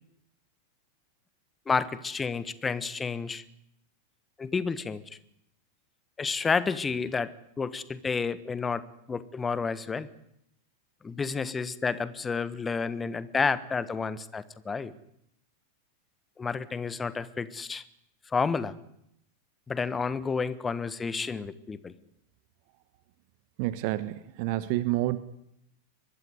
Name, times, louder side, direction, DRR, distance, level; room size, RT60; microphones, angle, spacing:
voice 1, 1.7-3.4 4.4-5.0 6.2-7.3 7.6-8.8 9.1-10.1 11.0-14.9 16.4-17.8 18.3-18.7 19.7-21.9, left 5 dB, 15° left, 16 dB, 1.3 m, -30 dB
voice 2, 23.6-25.2, right 16 dB, 45° right, 14 dB, 1.2 m, -29 dB
23.5 x 20.5 x 9.8 m, 0.77 s
figure-of-eight pair, 90°, 0 cm